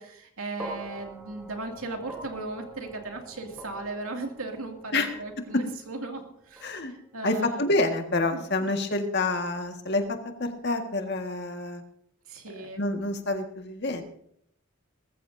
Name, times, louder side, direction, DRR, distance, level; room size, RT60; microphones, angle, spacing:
voice 1, 0.0-7.6 8.3-8.4 12.3-12.8, right 2 dB, 85° right, 3 dB, 2.5 m, -37 dB
sound 1, 0.6-8.9, right 1 dB, 5° right, 2.7 m, -46 dB
voice 2, 6.6-6.9 7.2-11.8 12.6-14.0, left 2 dB, 50° left, 5 dB, 1.7 m, -28 dB
20.0 x 14.5 x 2.7 m, 0.70 s
head